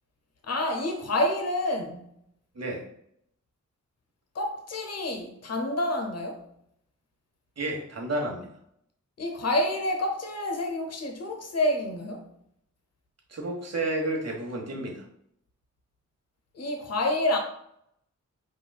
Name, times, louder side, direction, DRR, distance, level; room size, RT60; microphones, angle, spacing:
voice 1, 0.5-2.1 4.3-6.4 9.2-12.3 16.5-17.4, left 1 dB, 55° left, 4 dB, 0.9 m, -28 dB
voice 2, 2.5-2.9 7.6-8.5 13.3-15.0, right 2 dB, 55° right, 0 dB, 1.3 m, -31 dB
4.9 x 3.8 x 2.3 m, 0.72 s
cardioid pair, 70°, 30 cm